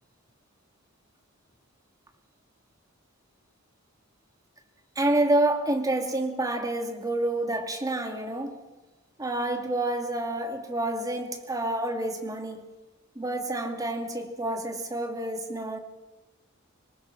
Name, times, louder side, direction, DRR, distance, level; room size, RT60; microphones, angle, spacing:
voice 1, 5.0-8.6 9.2-12.7 13.2-15.8, right 1 dB, 15° right, 2.6 m, -28 dB
26.0 x 21.5 x 5.9 m
head